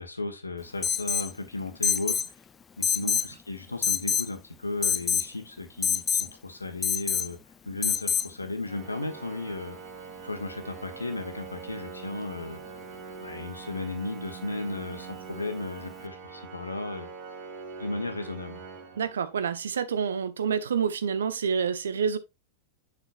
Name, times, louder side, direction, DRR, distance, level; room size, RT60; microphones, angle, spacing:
voice 1, 0.0-2.3 2.8-7.4 7.6-9.8 10.2-12.6 13.2-17.1 17.8-18.6, left 2 dB, 80° left, 1.3 m, -35 dB
Alarm, 0.8-1.3 1.8-2.3 2.8-3.3 3.8-4.3 4.8-5.3 5.8-6.3 6.8-7.3 7.8-8.3, left 7 dB, 20° left, 0.4 m, -26 dB
Organ, 8.7-19.6, right 5 dB, 50° right, 1.9 m, -43 dB
voice 2, 19.0-22.2, right 6 dB, 65° right, 0.7 m, -28 dB
7.0 x 6.0 x 2.5 m
figure-of-eight pair, 90°, 0 cm